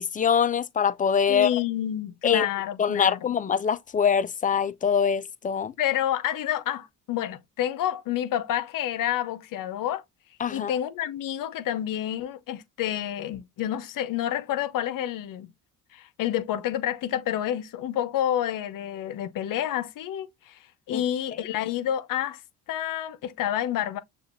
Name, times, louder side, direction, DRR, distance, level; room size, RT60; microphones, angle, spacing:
voice 1, 0.0-1.5 2.2-2.5 2.8-5.7 10.4-10.7 20.9-21.0, left 7 dB, 25° left, 0.4 m, -24 dB
voice 2, 1.3-3.2 5.8-10.0 10.5-15.5 15.9-20.6 20.9-22.4 22.7-24.0, left 11 dB, 65° left, 0.7 m, -29 dB
6.5 x 2.4 x 2.5 m
supercardioid pair, 65°, 35 cm